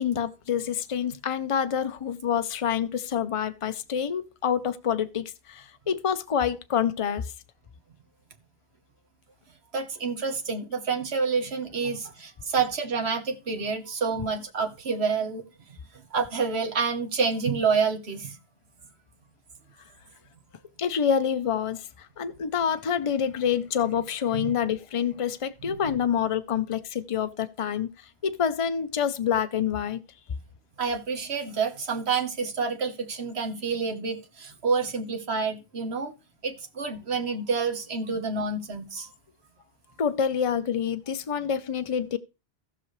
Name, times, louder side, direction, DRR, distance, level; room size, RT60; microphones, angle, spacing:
voice 1, 0.0-7.3 20.8-30.0 40.0-42.2, left 8 dB, 35° left, 0.7 m, -27 dB
voice 2, 9.7-15.8 16.1-18.4 24.3-24.4 25.6-25.8 30.8-36.1 36.4-39.1, right 5 dB, 85° right, 1.5 m, -28 dB
17.0 x 6.0 x 3.2 m
omnidirectional pair, 1.1 m